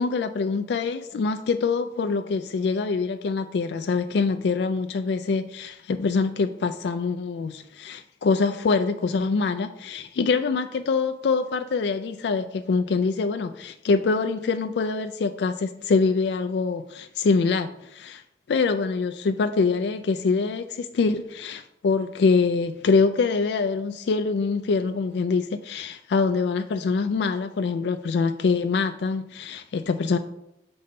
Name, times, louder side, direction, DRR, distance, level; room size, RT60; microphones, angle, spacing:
voice 1, 0.0-18.2 18.5-30.2, left 4 dB, 75° left, 8 dB, 0.4 m, -24 dB
6.7 x 3.9 x 5.3 m, 0.83 s
head